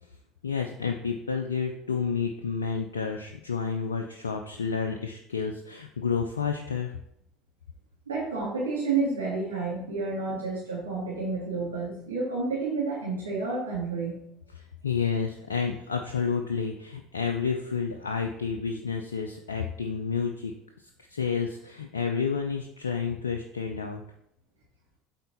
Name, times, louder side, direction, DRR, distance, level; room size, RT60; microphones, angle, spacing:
voice 1, 0.4-6.9 14.8-20.5 21.1-24.0, left 6 dB, 80° left, 4 dB, 0.5 m, -30 dB
voice 2, 8.1-14.2, right 4 dB, 80° right, -8 dB, 2.1 m, -30 dB
7.7 x 4.3 x 4.1 m, 0.75 s
figure-of-eight pair, 65°, 0 cm